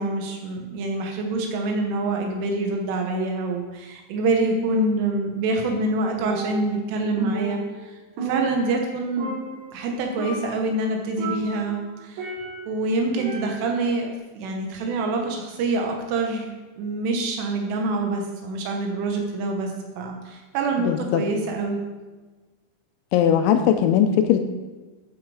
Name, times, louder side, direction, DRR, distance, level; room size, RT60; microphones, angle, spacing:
voice 1, 0.0-9.3 9.7-12.3 12.7-19.7 20.0-21.8, right 2 dB, 80° right, 2 dB, 3.6 m, -26 dB
Percussion, 6.2-6.9 7.2-8.9 9.2-9.9 10.2-10.7 11.2-12.8 13.2-13.8, right 3 dB, 65° right, 4.1 m, -33 dB
voice 2, 20.9-21.2 23.1-24.4, left 9 dB, 80° left, 7 dB, 2.8 m, -19 dB
11.5 x 8.2 x 4.8 m, 1.3 s
omnidirectional pair, 5.6 m